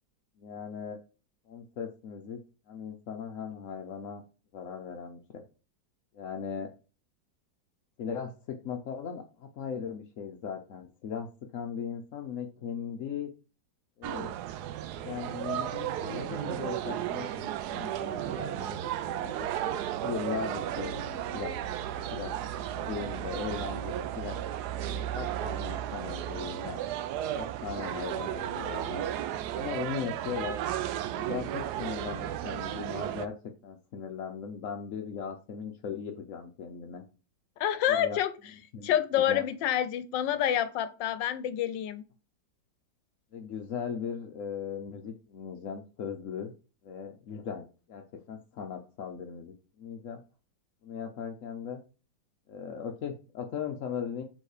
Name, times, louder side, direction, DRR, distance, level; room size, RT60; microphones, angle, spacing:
voice 1, 0.4-1.0 1.5-2.4 2.7-4.2 4.5-5.2 6.1-6.7 8.0-11.3 11.5-13.3 14.0-14.3 14.9-19.5 20.0-21.5 21.9-22.3 22.6-24.4 24.7-26.8 27.3-29.0 29.5-30.6 31.1-37.0 37.9-38.2 38.7-39.4 43.3-46.5 46.8-47.6 47.9-50.2 50.8-51.8 52.5-54.2, left 7 dB, 60° left, 3 dB, 0.9 m, -38 dB
sound 1, 14.0-33.3, right 11 dB, 70° right, 1.0 m, -34 dB
voice 2, 37.6-38.3 38.8-42.0, left 10 dB, 85° left, 12 dB, 1.4 m, -28 dB
6.8 x 3.7 x 4.9 m, 0.35 s
omnidirectional pair, 2.0 m